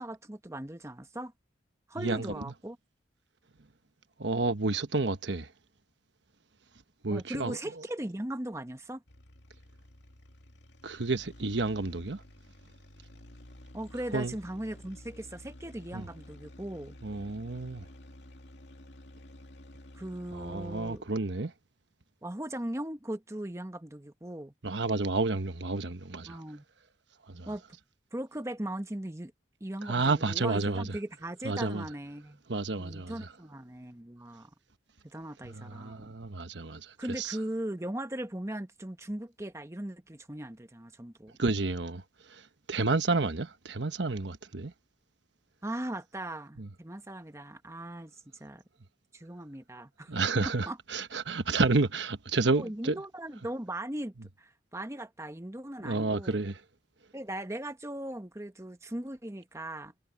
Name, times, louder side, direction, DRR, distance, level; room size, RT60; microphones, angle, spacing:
voice 1, 0.0-1.3 1.9-2.8 7.1-9.0 13.7-17.0 19.9-21.0 22.2-24.5 26.3-26.6 27.5-27.6 28.1-29.3 29.6-32.4 32.8-34.5 35.0-36.1 37.0-41.3 45.6-48.1 48.4-48.6 49.1-50.1 50.7-50.8 52.4-56.4 57.1-59.9, right 1 dB, 15° right, 1.1 m, -38 dB
voice 2, 4.2-5.5 7.0-7.6 10.8-12.2 14.1-14.3 15.9-16.0 17.0-17.8 20.3-21.5 24.6-26.4 27.3-27.5 29.8-30.9 31.4-31.8 32.5-33.1 35.5-37.4 41.4-42.0 42.3-42.4 42.7-44.7 46.6-46.7 50.1-53.0 55.8-56.6, right 3 dB, 75° right, 1.1 m, -30 dB
sound 1, 9.1-21.2, left 1 dB, 75° left, 2.3 m, -51 dB
head